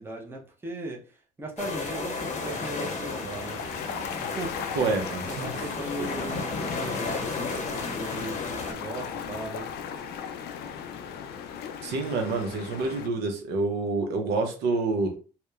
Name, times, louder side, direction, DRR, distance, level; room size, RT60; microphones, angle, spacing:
voice 1, 0.0-3.6 4.2-4.6 5.2-9.7, right 2 dB, 15° right, -1 dB, 0.6 m, -38 dB
sound 1, 1.6-8.7, left 3 dB, 45° left, 0.7 m, -34 dB
sound 2, 2.2-13.1, left 7 dB, 75° left, 0.4 m, -37 dB
voice 2, 4.8-5.6 6.0-6.1 11.8-15.2, right 3 dB, 75° right, 4 dB, 0.6 m, -28 dB
2.8 x 2.1 x 2.3 m, 0.36 s
cardioid pair, 110°, 17 cm